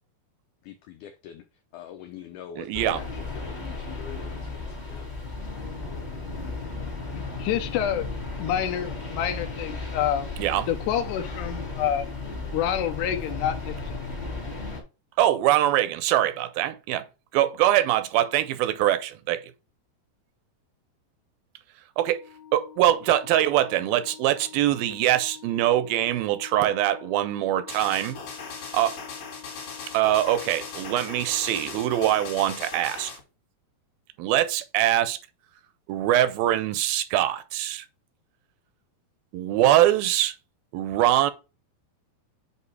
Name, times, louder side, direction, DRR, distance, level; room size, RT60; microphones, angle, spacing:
voice 1, 0.6-1.4 1.7-5.1, left 9 dB, 90° left, 1.8 m, -43 dB
voice 2, 2.6-3.0 10.4-10.7 15.2-17.1 17.3-19.4 22.0-22.2 22.5-28.1 28.7-29.0 29.9-33.1 34.2-35.2 35.9-37.9 39.3-40.3 40.7-41.3, right 13 dB, 80° right, 2.3 m, -23 dB
sound 1, 2.7-14.8, left 3 dB, 25° left, 0.9 m, -35 dB
voice 3, 7.1-8.1 8.4-10.3 10.7-12.1 12.5-14.0, left 10 dB, 75° left, 2.0 m, -28 dB
Organ, 22.1-32.9, left 8 dB, 35° right, 0.3 m, -48 dB
sound 2, 27.7-33.2, left 5 dB, 55° left, 3.0 m, -39 dB
8.1 x 2.7 x 4.7 m
omnidirectional pair, 4.3 m